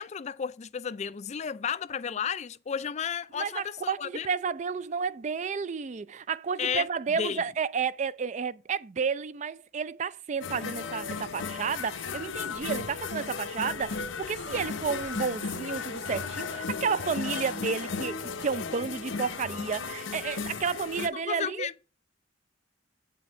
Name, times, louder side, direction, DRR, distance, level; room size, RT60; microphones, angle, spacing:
voice 1, 0.0-4.3 6.6-6.9 7.1-7.4 21.1-21.7, left 7 dB, 35° left, 0.4 m, -33 dB
voice 2, 3.3-21.7, right 5 dB, 40° right, 0.4 m, -31 dB
sound 1, 10.4-21.1, left 5 dB, 90° left, 0.9 m, -35 dB
8.2 x 5.7 x 5.3 m
head